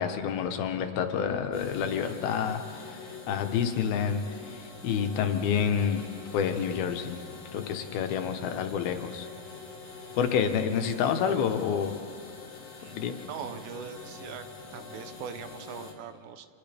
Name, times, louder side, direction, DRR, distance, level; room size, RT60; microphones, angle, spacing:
voice 1, 0.0-4.2 4.5-6.0 6.3-7.2 7.5-9.3 10.2-11.9 12.9-13.1, left 7 dB, 80° left, 6 dB, 3.0 m, -28 dB
sound 1, 1.5-15.9, left 4 dB, 50° left, 3.6 m, -45 dB
voice 2, 13.3-14.4 14.7-16.5, right 8 dB, 80° right, 9 dB, 2.7 m, -41 dB
29.5 x 28.0 x 3.5 m, 2.2 s
omnidirectional pair, 4.4 m